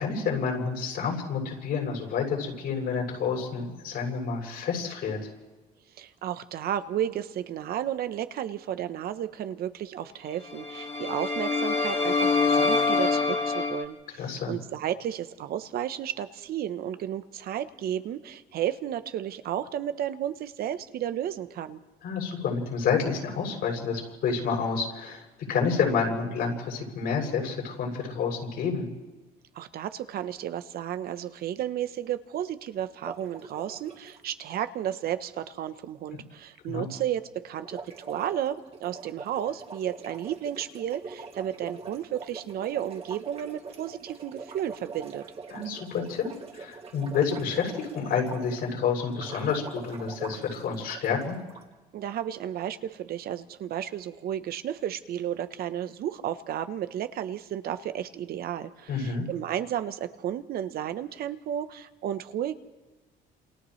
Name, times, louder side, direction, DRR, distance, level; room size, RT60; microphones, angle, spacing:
voice 1, 0.0-5.2 14.2-14.5 22.0-25.2 25.5-28.9 36.7-36.9 45.5-46.2 46.5-51.4 58.9-59.3, left 6 dB, 70° left, -1 dB, 7.0 m, -29 dB
voice 2, 6.0-14.0 14.5-21.8 29.5-45.2 51.9-62.5, right 10 dB, 65° right, 11 dB, 0.9 m, -33 dB
sound 1, 10.5-13.8, left 4 dB, 40° left, 2.3 m, -25 dB
sound 2, 33.0-34.2 37.6-48.7 49.1-51.6, right 4 dB, 35° right, 2.2 m, -43 dB
29.5 x 28.0 x 3.2 m, 1.2 s
cardioid pair, 110°, 17 cm